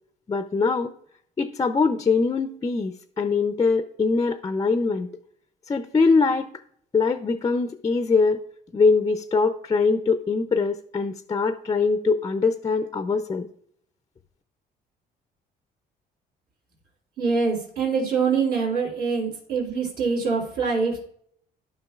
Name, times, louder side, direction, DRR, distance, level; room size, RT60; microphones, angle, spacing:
voice 1, 0.3-0.9 1.4-5.1 5.7-6.5 6.9-8.4 8.7-13.5, left 4 dB, 20° left, 9 dB, 0.4 m, -22 dB
voice 2, 17.2-21.0, right 5 dB, 70° right, -7 dB, 2.9 m, -24 dB
12.5 x 5.6 x 2.4 m, 0.66 s
cardioid pair, 110°, 17 cm